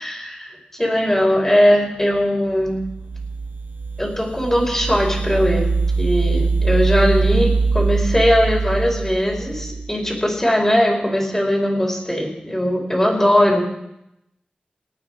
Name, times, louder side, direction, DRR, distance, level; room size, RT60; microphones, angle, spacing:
voice 1, 0.0-2.8 4.0-5.7 6.0-13.6, equal, 10° left, -2 dB, 5.3 m, -19 dB
sound 1, 2.6-10.1, right 4 dB, 85° right, 1.6 m, -22 dB
27.5 x 9.4 x 5.0 m, 0.85 s
wide cardioid pair, 70°, 3 cm